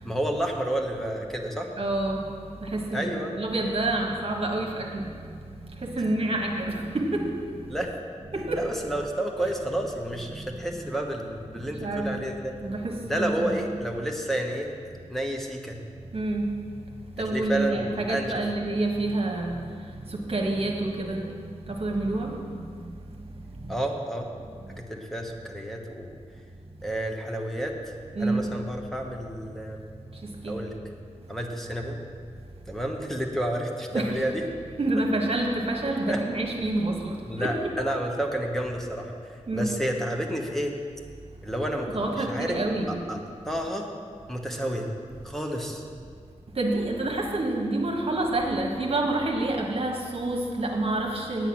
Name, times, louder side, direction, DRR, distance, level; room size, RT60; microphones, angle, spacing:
voice 1, 0.0-1.7 2.9-3.5 7.7-8.0 8.6-12.5 13.1-14.7 15.1-15.8 17.3-18.3 23.7-24.3 24.8-26.1 26.8-27.8 28.2-29.8 30.5-30.7 31.3-32.0 32.7-34.4 36.1-36.2 37.2-39.1 39.5-40.7 41.4-42.6 42.9-43.2 43.4-43.9 44.3-44.9 45.2-45.8, right 1 dB, ahead, 0 dB, 1.2 m, -30 dB
voice 2, 1.8-2.3 2.6-5.1 5.8-7.3 8.3-8.7 11.8-12.2 12.6-13.7 16.1-16.6 17.2-19.6 20.1-22.6 23.6-23.7 28.1-28.6 30.4-30.6 33.9-34.2 34.8-37.7 39.5-39.7 41.9-43.0 46.5-51.5, right 2 dB, 50° right, 0 dB, 1.3 m, -28 dB
9.0 x 8.1 x 5.9 m, 2.1 s
wide cardioid pair, 70°, 12 cm